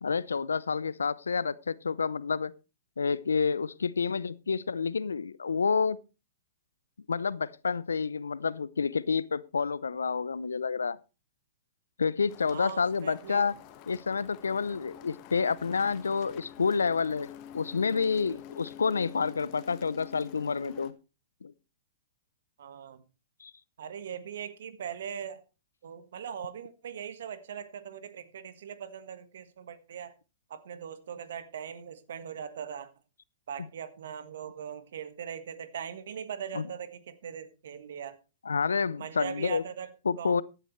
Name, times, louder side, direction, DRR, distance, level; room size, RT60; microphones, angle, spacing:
voice 1, 0.0-2.5 3.0-6.0 7.1-11.0 12.0-13.5 13.9-17.3 17.5-20.9 21.4-21.5 23.4-23.5 36.5-36.6 38.5-39.6 40.1-40.4, left 5 dB, 85° left, 0.6 m, -29 dB
sound 1, 12.3-20.9, left 10 dB, 40° left, 1.4 m, -48 dB
voice 2, 12.5-13.5 22.6-23.0 23.8-25.4 25.8-30.1 30.5-32.9 33.5-38.2 39.0-40.4, right 8 dB, 70° right, 1.5 m, -40 dB
15.0 x 11.0 x 3.2 m
hypercardioid pair, 110°, 0 cm